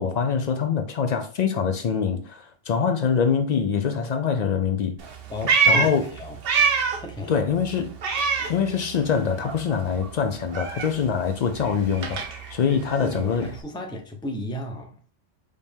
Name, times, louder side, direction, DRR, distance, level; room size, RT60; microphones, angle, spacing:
voice 1, 0.0-5.0 5.7-6.0 7.3-7.9 8.5-13.5, left 6 dB, 60° left, 0.4 m, -24 dB
Meow, 5.0-7.1 7.4-9.2 9.4-13.6, right 5 dB, 55° right, 0.8 m, -26 dB
voice 2, 5.3-6.4 7.0-7.4 12.8-15.0, left 1 dB, 5° left, 0.5 m, -34 dB
5.0 x 2.8 x 3.5 m
omnidirectional pair, 1.2 m